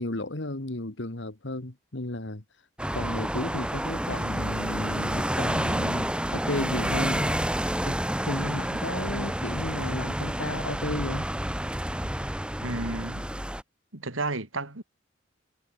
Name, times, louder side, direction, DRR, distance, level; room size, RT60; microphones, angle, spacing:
voice 1, 0.0-2.4 2.9-7.4 7.8-11.3, left 2 dB, 65° left, 1.8 m, -33 dB
sound 1, 2.8-13.6, equal, 5° right, 3.4 m, -29 dB
voice 2, 12.6-13.2 13.9-14.8, right 2 dB, 85° right, 3.1 m, -32 dB
head